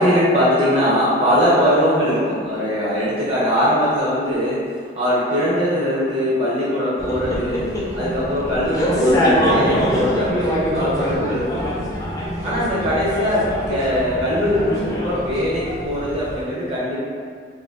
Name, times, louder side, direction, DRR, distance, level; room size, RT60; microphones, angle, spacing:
voice 1, 0.0-4.6 5.0-7.6 7.9-11.7 12.4-17.0, equal, 35° right, -9 dB, 0.5 m, -21 dB
sound 1, 7.0-16.4, equal, 20° left, 0.4 m, -24 dB
2.4 x 2.2 x 3.3 m, 2.1 s
head